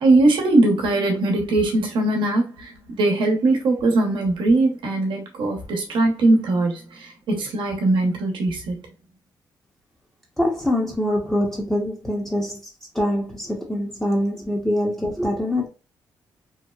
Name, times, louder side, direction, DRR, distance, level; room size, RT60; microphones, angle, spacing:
voice 1, 0.0-8.8, right 2 dB, 80° right, 0.9 m, -20 dB
voice 2, 10.4-12.6 12.9-15.7, left 1 dB, 5° left, 0.8 m, -24 dB
2.9 x 2.0 x 2.3 m
cardioid pair, 70°, 8 cm